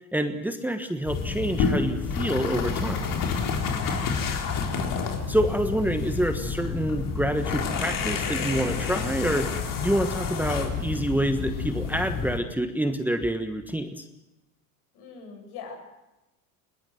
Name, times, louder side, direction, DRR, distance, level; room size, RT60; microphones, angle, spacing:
voice 1, 0.1-3.1 5.3-9.5 9.8-14.0, right 1 dB, 5° right, 7 dB, 1.3 m, -27 dB
sound 1, 1.0-12.4, left 5 dB, 50° left, 3.9 m, -29 dB
voice 2, 3.8-4.4 14.9-15.8, left 5 dB, 65° left, 4 dB, 7.4 m, -42 dB
20.5 x 20.0 x 7.8 m, 0.97 s
supercardioid pair, 100°, 43 cm